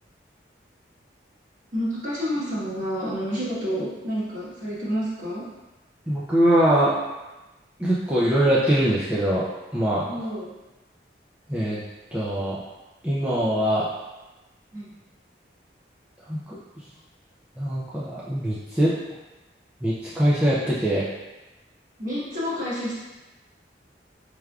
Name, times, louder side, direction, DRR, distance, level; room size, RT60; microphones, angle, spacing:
voice 1, 1.7-5.4 10.0-10.5 14.7-14.9 22.0-23.0, equal, 45° right, -8 dB, 1.3 m, -29 dB
voice 2, 6.1-7.0 7.8-9.5 9.7-10.1 11.5-11.8 12.1-12.6 13.0-13.9 16.3-16.6 17.6-18.9 19.8-21.1, right 1 dB, 10° right, -9 dB, 0.4 m, -22 dB
4.8 x 3.3 x 2.3 m, 1.1 s
head